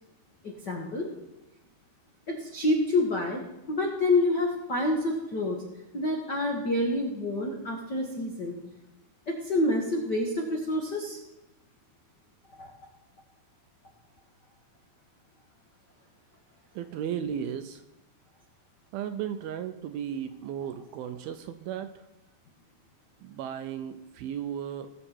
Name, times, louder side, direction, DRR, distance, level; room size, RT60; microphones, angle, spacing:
voice 1, 0.4-1.1 2.3-3.4 3.7-5.6 5.9-8.6 9.3-11.2 12.6-12.7, left 2 dB, 70° left, -1 dB, 1.0 m, -28 dB
voice 2, 16.8-17.8 18.9-21.9 23.2-24.9, right 9 dB, 80° right, 9 dB, 2.3 m, -35 dB
19.5 x 7.6 x 4.5 m, 0.98 s
omnidirectional pair, 4.7 m